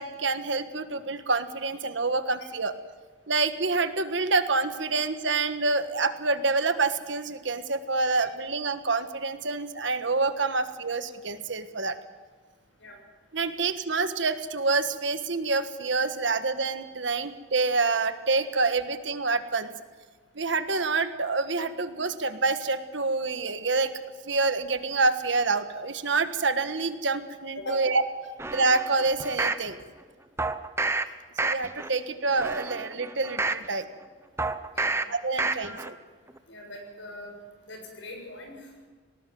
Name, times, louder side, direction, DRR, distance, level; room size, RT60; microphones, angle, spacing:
voice 1, 0.0-2.7 3.3-12.0 13.3-19.7 20.3-23.9 24.2-28.0 28.5-29.8 31.5-33.9 35.1-35.9, right 3 dB, 65° right, 10 dB, 1.5 m, -27 dB
sound 1, 28.4-29.7 30.4-31.0 31.4-31.9 32.3-33.7 34.4-35.0 35.4-35.9 36.3-36.4, right 3 dB, 15° right, 0.9 m, -29 dB
voice 2, 36.5-37.3 37.6-38.9, left 1 dB, 70° left, 2 dB, 7.1 m, -41 dB
19.0 x 18.5 x 7.7 m, 1.4 s
head